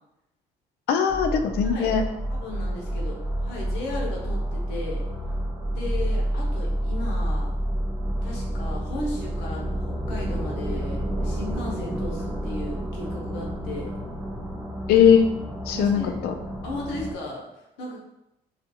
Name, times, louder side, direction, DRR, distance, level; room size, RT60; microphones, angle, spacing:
voice 1, 0.9-2.0 14.9-15.3 15.7-16.3, left 7 dB, 70° left, 6 dB, 0.4 m, -19 dB
sound 1, 1.1-17.1, right 1 dB, 10° right, 0.4 m, -29 dB
voice 2, 1.6-1.9 2.3-5.1 5.7-7.5 8.2-13.9 15.7-16.2 16.6-18.0, left 2 dB, 90° left, -2 dB, 0.8 m, -36 dB
2.4 x 2.4 x 2.7 m, 0.87 s
cardioid pair, 110°, 17 cm